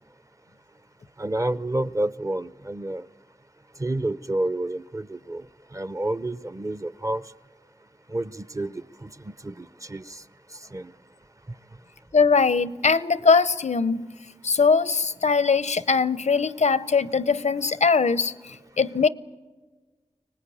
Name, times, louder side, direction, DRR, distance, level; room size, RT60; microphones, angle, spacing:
voice 1, 1.2-3.0 3.8-5.4 5.7-7.2 8.1-10.2 10.7-10.9, right 1 dB, 30° right, 0.6 m, -29 dB
voice 2, 12.1-14.1 14.4-18.3 18.8-19.1, left 5 dB, 80° left, 0.7 m, -21 dB
25.0 x 19.5 x 8.6 m
wide cardioid pair, 50°, 12 cm